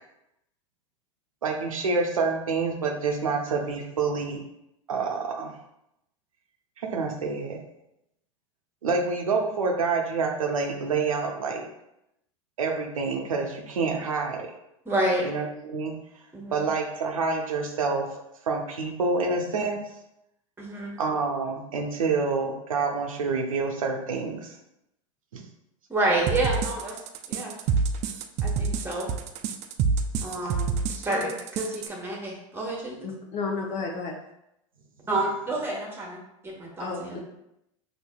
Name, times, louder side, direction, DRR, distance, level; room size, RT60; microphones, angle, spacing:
voice 1, 1.4-4.4 4.9-5.6 6.8-7.6 8.8-11.7 12.6-14.5 15.2-15.9 16.5-18.1 18.4-19.8 21.0-24.6 25.3-25.4, right 4 dB, 90° right, 2 dB, 0.6 m, -27 dB
voice 2, 14.8-15.2 16.3-16.6 20.6-20.9 25.9-27.0 27.3-27.5 28.4-29.1 30.2-33.1 35.1-37.2, right 2 dB, 15° right, -1 dB, 1.1 m, -29 dB
sound 1, 26.3-31.9, right 5 dB, 45° right, 0.4 m, -27 dB
voice 3, 33.0-34.1 36.8-37.2, left 4 dB, 45° left, 1 dB, 0.7 m, -32 dB
4.4 x 2.7 x 2.2 m, 0.83 s
hypercardioid pair, 90°, 17 cm